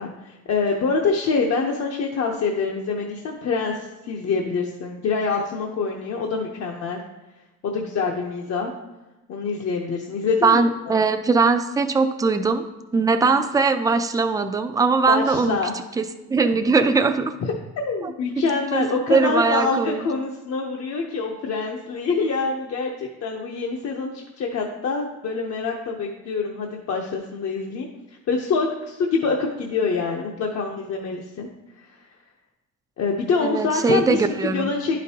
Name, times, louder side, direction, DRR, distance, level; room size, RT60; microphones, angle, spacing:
voice 1, 0.0-7.0 7.6-8.7 9.3-10.6 10.9-11.0 15.1-15.7 17.4-27.9 28.3-31.5 31.7-32.0 33.0-35.0, left 4 dB, 55° left, 0 dB, 0.7 m, -25 dB
voice 2, 10.4-12.6 12.9-15.6 16.0-17.3 18.7-18.8 19.1-20.0 33.4-34.7, right 4 dB, 10° right, 7 dB, 0.3 m, -20 dB
11.0 x 5.2 x 2.8 m, 1.0 s
cardioid pair, 150°, 30 cm